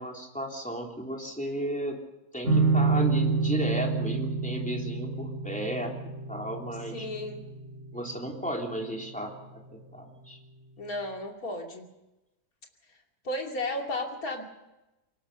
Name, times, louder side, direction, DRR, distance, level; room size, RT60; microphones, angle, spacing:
voice 1, 0.0-2.0 2.3-7.1 7.9-9.3 9.9-10.4, right 1 dB, 5° left, 0 dB, 3.3 m, -34 dB
sound 1, 2.4-9.6, right 4 dB, 45° right, 3.4 m, -29 dB
voice 2, 6.9-7.4 10.8-11.8 13.2-14.4, left 1 dB, 65° left, 2 dB, 3.2 m, -33 dB
23.0 x 19.5 x 6.7 m, 0.98 s
omnidirectional pair, 1.7 m